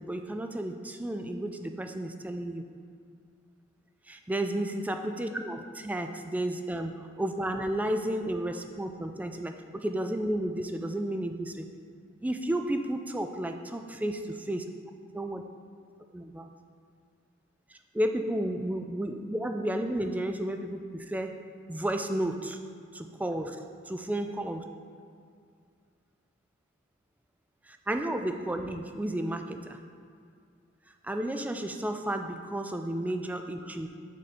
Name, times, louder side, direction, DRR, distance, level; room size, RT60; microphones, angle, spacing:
voice 1, 0.0-2.7 4.1-11.7 12.2-14.2 14.5-14.7 15.1-15.4 16.1-16.5 17.9-21.4 21.7-22.6 22.9-23.6 23.9-24.6 27.7-29.8 31.0-33.9, right 1 dB, 10° right, 6 dB, 0.3 m, -32 dB
9.1 x 3.6 x 4.2 m, 2.2 s
head